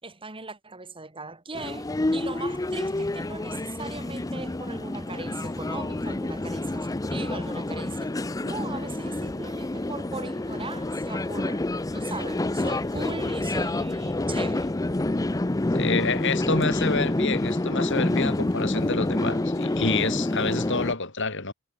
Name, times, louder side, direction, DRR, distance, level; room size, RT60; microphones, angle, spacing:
voice 1, 0.0-8.1 8.4-11.6 11.9-14.7, right 3 dB, 25° right, 3.2 m, -39 dB
sound 1, 1.5-20.9, left 2 dB, 15° left, 0.5 m, -28 dB
voice 2, 15.7-21.5, left 4 dB, 55° left, 4.2 m, -28 dB
head